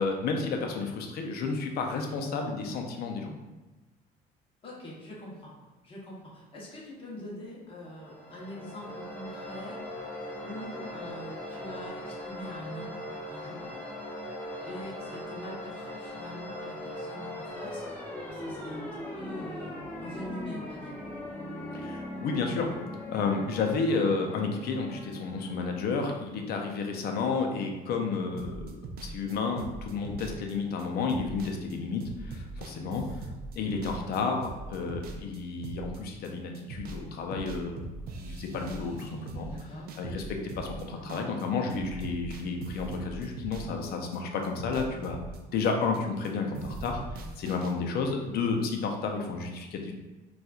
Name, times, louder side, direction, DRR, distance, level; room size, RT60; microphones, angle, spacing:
voice 1, 0.0-3.4 21.7-22.7 23.1-28.7 29.0-33.0 33.6-39.5 40.0-45.2 45.5-47.0 47.4-49.9, left 4 dB, 65° left, 3 dB, 0.5 m, -31 dB
voice 2, 4.6-5.5 5.8-9.8 10.4-13.0 13.3-13.7 14.6-17.9 18.3-21.0 31.3-31.5 39.4-39.9 40.9-41.2, left 1 dB, 30° left, -5 dB, 1.0 m, -44 dB
sound 1, 7.9-26.6, left 1 dB, 10° left, 0.6 m, -40 dB
sound 2, 28.4-37.0 37.3-41.4 41.7-44.2 44.4-46.3 46.5-47.7, right 3 dB, 65° right, 0.4 m, -41 dB
4.1 x 2.4 x 2.4 m, 1.1 s
cardioid pair, 110°, 17 cm